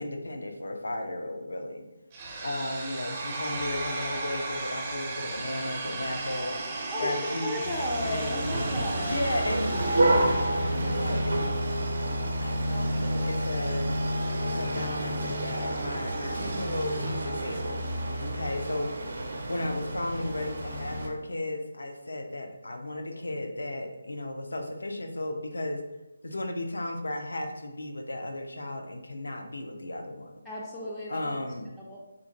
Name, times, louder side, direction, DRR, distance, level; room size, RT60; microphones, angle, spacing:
voice 1, 0.0-1.9 2.4-7.7 8.0-8.4 9.0-11.4 12.4-14.0 14.4-19.0 19.5-25.9 26.2-30.4 31.1-31.7, left 1 dB, 80° left, 4 dB, 0.5 m, -35 dB
sound 1, 2.1-12.1, right 3 dB, 25° right, 0.7 m, -36 dB
voice 2, 6.9-9.2 30.5-31.4 31.9-32.0, left 1 dB, 10° left, -6 dB, 0.4 m, -34 dB
sound 2, 7.6-21.1, right 1 dB, 60° right, 0.5 m, -29 dB
3.9 x 2.8 x 2.6 m, 0.99 s
figure-of-eight pair, 155°, 0 cm